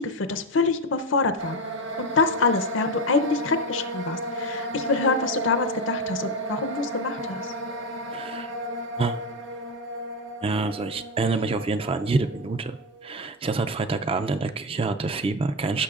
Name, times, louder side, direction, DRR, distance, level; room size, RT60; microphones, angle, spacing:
voice 1, 0.0-1.6 2.0-7.5, left 3 dB, 65° left, 10 dB, 0.6 m, -25 dB
sound 1, 1.4-13.3, right 2 dB, 60° right, 1.5 m, -33 dB
voice 2, 8.1-8.5 9.0-9.2 10.4-12.8 13.0-15.8, right 3 dB, 30° right, 9 dB, 0.4 m, -26 dB
15.0 x 6.5 x 2.4 m, 0.85 s
head